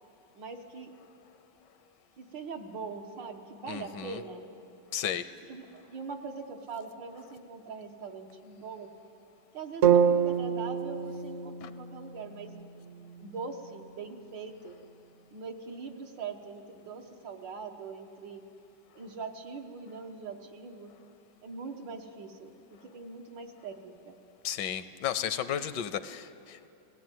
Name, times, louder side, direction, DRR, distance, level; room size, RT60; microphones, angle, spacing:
voice 1, 0.4-0.9 1.8-4.6 5.0-5.1 5.5-8.9 9.5-12.5 13.2-14.9 15.3-18.4 18.9-20.9 21.4-24.2, right 4 dB, 80° right, 4 dB, 2.0 m, -42 dB
voice 2, 3.7-4.2 4.9-5.3 11.6-11.7 24.4-26.7, left 9 dB, 75° left, 13 dB, 1.3 m, -34 dB
sound 1, 9.8-13.9, right 8 dB, 55° right, 1.2 m, -28 dB
19.0 x 16.5 x 9.1 m, 2.6 s
omnidirectional pair, 2.0 m